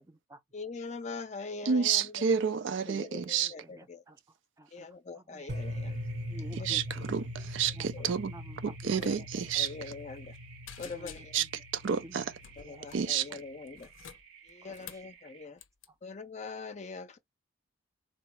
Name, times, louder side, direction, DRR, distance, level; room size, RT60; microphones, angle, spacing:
voice 1, 0.0-0.4 2.9-4.9 5.1-5.5 6.3-7.2 7.7-8.0 8.3-9.3 10.8-11.6 12.0-12.3 12.6-13.0 13.3-13.4 14.6-15.0 15.9-16.0, right 1 dB, 15° right, 0.5 m, -51 dB
voice 2, 0.5-2.3 3.0-4.0 4.7-6.0 6.6-6.8 7.6-8.1 8.9-9.3 9.5-10.3 10.8-11.2 12.6-13.9 14.5-15.6 16.0-17.2, left 4 dB, 35° left, 0.5 m, -43 dB
voice 3, 1.7-3.5 6.6-6.8 7.1-7.2 7.5-8.3 8.6-9.7 11.3-11.5 11.7-12.2 12.9-13.3, right 7 dB, 65° right, 0.4 m, -29 dB
sound 1, 5.4-15.5, right 6 dB, 85° right, 1.1 m, -56 dB
sound 2, 5.5-13.6, left 1 dB, 50° right, 0.8 m, -42 dB
sound 3, 9.0-9.1 9.4-9.6 10.0-10.4 10.7-11.6 12.4-13.1 13.7-15.1 15.6-15.9, left 9 dB, 80° left, 0.6 m, -50 dB
3.8 x 2.0 x 3.1 m
head